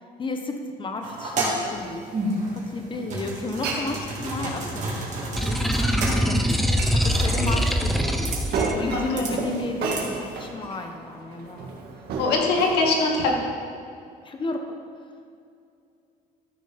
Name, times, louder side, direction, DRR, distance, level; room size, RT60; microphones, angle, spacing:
voice 1, 0.2-2.0 2.5-6.6 6.9-11.7 14.2-14.6, left 2 dB, 30° left, 4 dB, 1.2 m, -33 dB
sound 1, 1.0-10.5, right 2 dB, 45° right, 3.0 m, -32 dB
Glass, 3.4-13.3, right 3 dB, 70° right, 1.9 m, -34 dB
sound 2, 5.4-8.7, equal, ahead, 0.8 m, -23 dB
voice 2, 8.9-9.4 12.2-13.3, left 3 dB, 80° left, 0 dB, 2.0 m, -22 dB
13.5 x 6.4 x 5.3 m, 2.4 s
cardioid pair, 110°, 17 cm